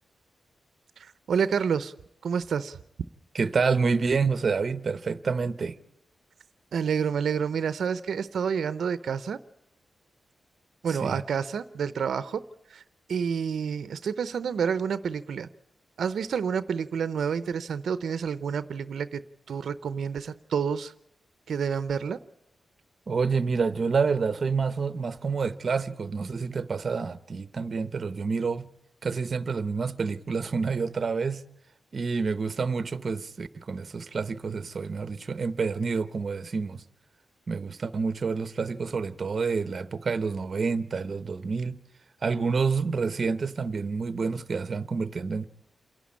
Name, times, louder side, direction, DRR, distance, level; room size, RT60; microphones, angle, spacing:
voice 1, 1.0-1.9 2.2-2.8 6.7-9.4 10.8-12.4 12.7-12.8 13.1-15.5 16.0-19.2 19.5-20.9 21.5-22.2, right 7 dB, 75° right, 0.6 m, -29 dB
voice 2, 3.3-5.8 10.9-11.2 23.1-28.7 29.0-31.4 31.9-36.8 37.5-41.8 42.2-45.5, right 5 dB, 40° right, 0.8 m, -28 dB
27.5 x 11.5 x 8.5 m
wide cardioid pair, 160°, 0 cm